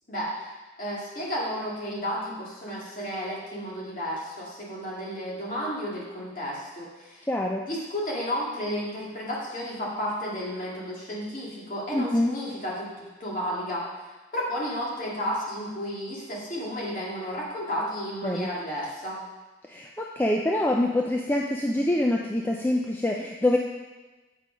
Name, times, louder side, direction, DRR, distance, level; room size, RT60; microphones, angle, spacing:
voice 1, 0.8-7.3 7.6-13.8 14.3-19.2, equal, 45° left, -5 dB, 2.3 m, -32 dB
voice 2, 7.3-7.6 11.9-12.3 18.2-18.5 19.7-23.6, left 1 dB, 10° left, 0 dB, 0.4 m, -25 dB
8.2 x 5.7 x 5.1 m, 1.2 s
head